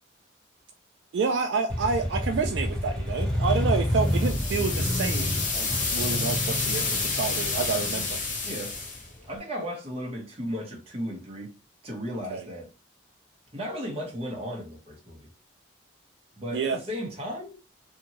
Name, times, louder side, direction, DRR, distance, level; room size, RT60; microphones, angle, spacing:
voice 1, 1.1-8.2 12.3-12.4 16.5-16.8, right 4 dB, 65° right, 0.3 m, -29 dB
Motorcycle, 1.7-9.3, left 1 dB, 5° left, 0.9 m, -29 dB
sound 1, 4.0-9.1, left 4 dB, 40° left, 0.7 m, -29 dB
voice 2, 9.3-11.5 11.8-12.7 13.5-15.3 16.4-17.6, equal, 30° right, 0.8 m, -35 dB
2.7 x 2.2 x 2.9 m
head